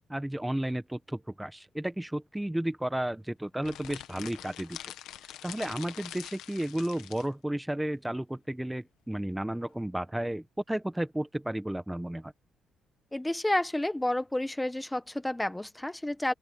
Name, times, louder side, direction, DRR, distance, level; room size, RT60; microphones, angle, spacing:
voice 1, 0.0-4.9 5.4-12.3, right 1 dB, 5° right, 1.1 m, -33 dB
sound 1, 3.6-7.3, left 12 dB, 85° left, 1.4 m, -44 dB
voice 2, 13.1-16.3, left 1 dB, 10° left, 1.3 m, -30 dB
open air
cardioid pair, 90°, 0 cm